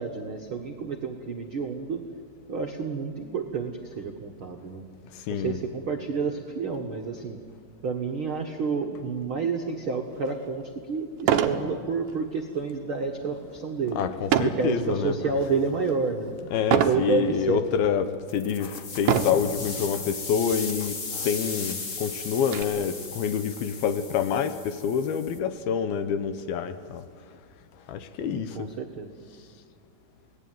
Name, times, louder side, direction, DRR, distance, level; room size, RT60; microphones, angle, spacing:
voice 1, 0.0-2.0 2.5-4.8 5.3-7.4 7.8-14.0 14.4-16.3 16.8-17.6 28.2-29.1, right 5 dB, 85° right, 2 dB, 1.1 m, -29 dB
voice 2, 5.1-5.6 13.9-15.1 16.5-27.4 27.9-28.7, left 7 dB, 75° left, 10 dB, 2.5 m, -27 dB
sound 1, 10.3-10.4 11.2-11.6 12.1-12.4 14.3-14.7 15.3-15.7 16.7-17.1 17.8-17.9 19.0-19.5 20.5-20.6 21.0-21.1 21.5-22.6, right 9 dB, 65° right, 2.3 m, -24 dB
sound 2, 18.3-25.4, left 4 dB, 35° left, 2.6 m, -36 dB
27.0 x 19.0 x 9.3 m, 2.2 s
omnidirectional pair, 5.0 m